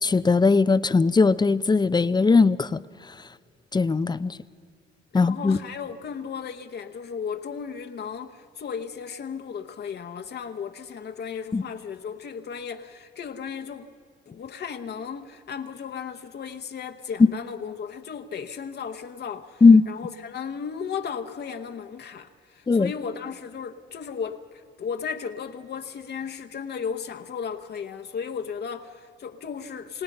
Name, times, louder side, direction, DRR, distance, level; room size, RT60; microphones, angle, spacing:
voice 1, 0.0-2.7 3.7-4.4 5.1-5.6 11.5-11.6 19.6-19.8 22.7-22.9, left 4 dB, 20° left, 0.6 m, -19 dB
voice 2, 5.1-13.9 14.3-30.0, left 6 dB, 55° left, 1.1 m, -35 dB
28.5 x 18.0 x 5.5 m
cardioid pair, 90°, 20 cm